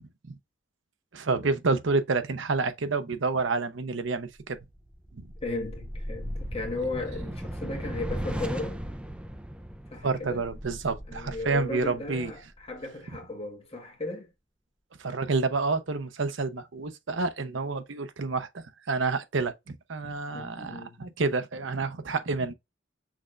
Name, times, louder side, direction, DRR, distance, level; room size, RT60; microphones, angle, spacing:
voice 1, 1.1-4.6 5.1-5.2 10.0-12.3 15.0-22.5, right 3 dB, 70° right, 0.8 m, -29 dB
sound 1, 4.4-12.8, equal, 5° right, 0.5 m, -37 dB
voice 2, 5.4-8.8 9.9-10.4 11.1-14.3 20.3-21.0, left 2 dB, 30° left, 1.5 m, -36 dB
6.2 x 3.2 x 2.5 m
head